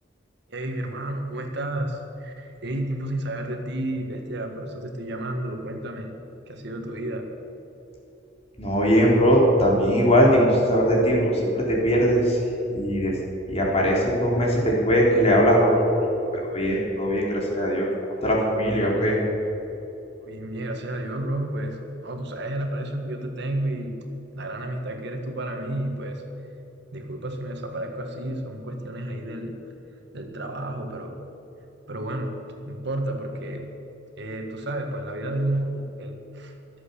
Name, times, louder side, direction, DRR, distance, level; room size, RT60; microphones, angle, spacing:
voice 1, 0.5-6.1 6.5-7.3 20.2-24.0 24.3-26.2 26.9-29.6 30.1-31.3 31.9-32.4 32.7-33.7 34.2-36.5, right 1 dB, 65° right, 4 dB, 1.8 m, -31 dB
voice 2, 8.6-12.4 12.7-13.1 13.5-16.1 16.5-17.9 18.2-19.2, equal, 35° left, -2 dB, 3.7 m, -20 dB
24.0 x 8.2 x 7.0 m, 3.0 s
head